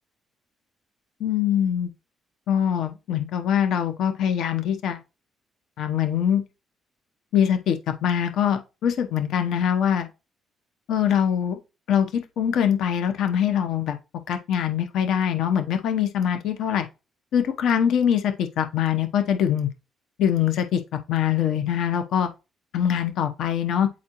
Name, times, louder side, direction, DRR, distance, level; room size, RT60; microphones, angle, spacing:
voice 1, 1.2-1.9 2.5-5.0 5.8-6.4 7.3-10.1 10.9-11.6 11.9-14.0 14.3-16.9 17.3-19.7 20.2-20.8 21.1-22.3 22.7-23.9, left 9 dB, 80° left, 0.9 m, -23 dB
8.6 x 4.2 x 3.0 m
cardioid pair, 90°, 0 cm